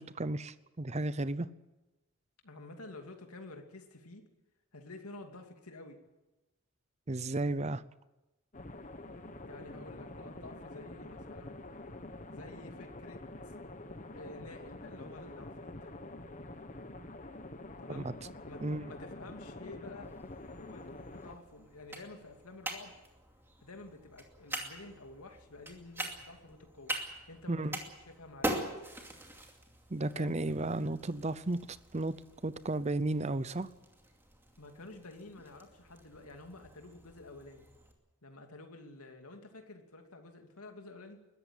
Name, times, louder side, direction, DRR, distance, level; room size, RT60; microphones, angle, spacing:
voice 1, 0.0-1.5 7.1-7.8 17.9-18.1 18.6-18.9 27.5-27.8 29.9-32.1 32.4-33.7, right 2 dB, 30° right, 16 dB, 0.7 m, -34 dB
voice 2, 2.4-4.3 4.7-6.0 9.4-11.6 12.3-13.5 14.1-16.0 17.8-18.1 18.4-20.1 20.6-23.0 23.6-27.0 27.3-28.7 30.1-30.4 34.6-37.7 38.2-41.2, left 2 dB, 90° left, 4 dB, 2.8 m, -50 dB
sound 1, 8.5-21.4, left 2 dB, 35° left, 1.3 m, -47 dB
sound 2, 20.0-37.9, right 1 dB, 10° right, 2.5 m, -44 dB
21.5 x 13.5 x 9.9 m, 1.1 s
head